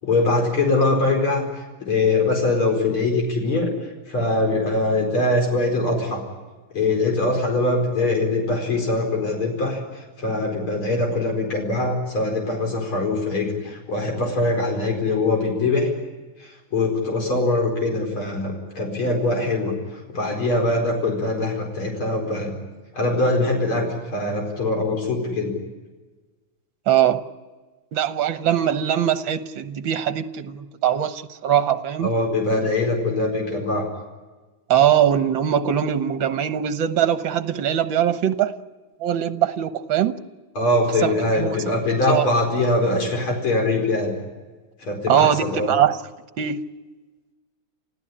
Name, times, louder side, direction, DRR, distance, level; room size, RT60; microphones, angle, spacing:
voice 1, 0.0-3.7 4.1-6.2 6.7-15.9 16.4-19.7 20.1-22.5 22.9-23.8 24.1-25.5 32.0-33.9 40.6-44.1 44.8-45.7, left 2 dB, 85° left, 1 dB, 5.6 m, -22 dB
voice 2, 26.9-27.2 27.9-32.1 34.7-38.5 39.0-40.1 41.0-41.6 42.1-42.2 45.1-46.0 46.4-46.6, right 10 dB, 70° right, 10 dB, 1.8 m, -21 dB
29.0 x 16.0 x 10.0 m, 1.3 s
omnidirectional pair, 2.3 m